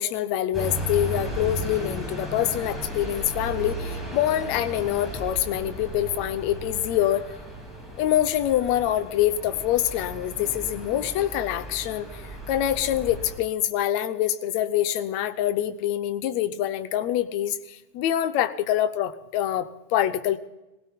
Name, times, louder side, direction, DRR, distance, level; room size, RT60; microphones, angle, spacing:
voice 1, 0.0-7.2 8.0-20.4, left 12 dB, 75° left, 10 dB, 2.1 m, -25 dB
sound 1, 0.5-13.4, right 1 dB, ahead, 6.7 m, -35 dB
22.0 x 16.5 x 3.7 m, 1.0 s
omnidirectional pair, 3.4 m